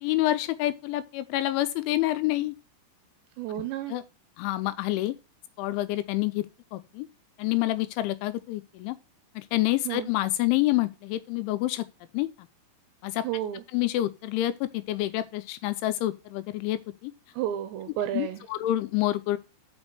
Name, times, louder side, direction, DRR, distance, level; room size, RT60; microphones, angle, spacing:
voice 1, 0.0-2.6 3.9-4.0 4.4-5.1 5.6-6.5 6.7-7.1 7.4-9.0 9.4-11.9 12.1-12.3 13.0-13.2 13.7-17.1 18.1-19.4, left 15 dB, 80° left, 2.9 m, -27 dB
voice 2, 3.4-3.9 9.9-10.1 13.2-13.6 17.3-18.4, right 12 dB, 80° right, 2.6 m, -31 dB
6.2 x 6.2 x 6.6 m
omnidirectional pair, 5.7 m